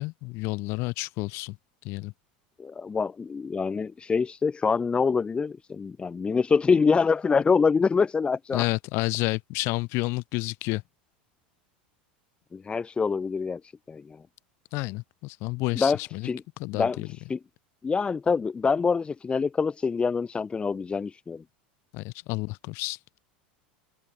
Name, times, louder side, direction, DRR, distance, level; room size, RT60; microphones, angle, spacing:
voice 1, 0.0-1.6 1.8-2.1 8.5-10.8 14.7-16.3 16.6-17.1 21.9-23.0, left 24 dB, 60° left, 5.6 m, -30 dB
voice 2, 2.6-8.6 12.5-13.6 13.9-14.2 15.8-16.4 16.7-17.0 17.3-17.4 17.8-21.4, left 5 dB, 20° left, 1.2 m, -25 dB
hypercardioid pair, 95°, 5 cm